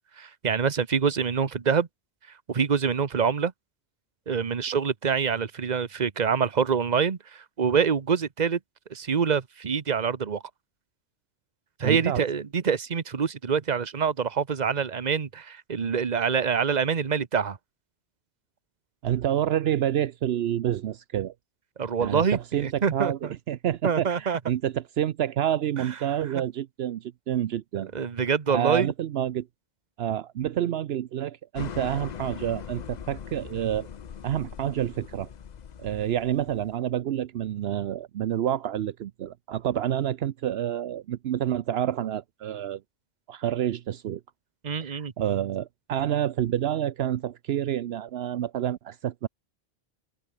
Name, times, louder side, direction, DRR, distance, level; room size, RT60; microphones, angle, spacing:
voice 1, 0.2-1.9 2.5-3.5 4.3-8.6 8.9-10.4 11.8-17.6 21.8-23.3 23.8-24.4 25.8-25.9 26.3-26.4 27.9-28.9 44.6-45.1, right 6 dB, 45° right, 1.1 m, -26 dB
voice 2, 11.8-12.2 19.0-21.3 22.0-27.9 28.5-29.5 30.0-33.9 34.2-35.3 35.8-42.8 43.3-44.2 44.8-49.3, right 11 dB, 75° right, 0.9 m, -28 dB
sound 1, 31.6-36.8, left 8 dB, 45° left, 0.7 m, -40 dB
omnidirectional pair, 1.1 m